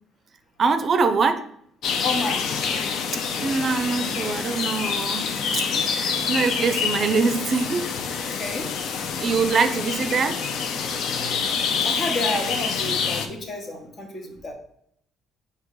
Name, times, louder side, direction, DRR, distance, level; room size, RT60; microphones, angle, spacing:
voice 1, 0.6-1.5 3.4-5.3 5.5-5.7 5.9-7.9 9.2-10.4, right 4 dB, 50° right, 9 dB, 0.4 m, -23 dB
sound 1, 1.8-13.3, left 6 dB, 70° left, 0.4 m, -27 dB
voice 2, 2.0-2.4 8.1-8.7 11.2-11.4 11.8-14.5, left 2 dB, 55° left, 3 dB, 1.0 m, -30 dB
4.5 x 2.8 x 3.7 m, 0.69 s
supercardioid pair, 70°, 0 cm